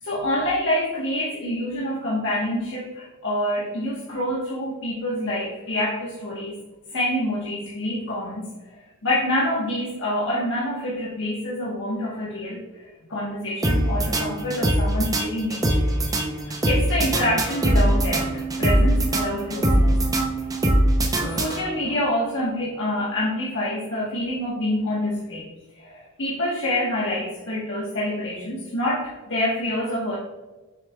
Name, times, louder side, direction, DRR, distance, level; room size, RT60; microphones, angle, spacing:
voice 1, 0.0-6.6 6.9-16.0 16.7-19.9 21.2-25.4 25.7-30.2, left 1 dB, 55° left, -6 dB, 1.2 m, -27 dB
sound 1, 13.6-22.0, right 1 dB, 15° right, 0.6 m, -22 dB
7.0 x 6.6 x 2.3 m, 1.2 s
head